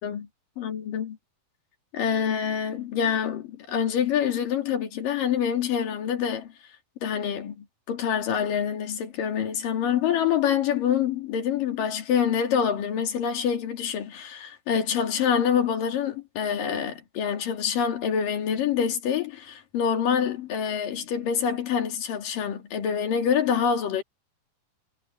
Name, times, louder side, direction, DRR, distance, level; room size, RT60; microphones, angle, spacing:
voice 1, 0.6-1.2 1.9-6.5 7.0-24.0, left 8 dB, 70° left, 4.2 m, -26 dB
omnidirectional pair, 4.0 m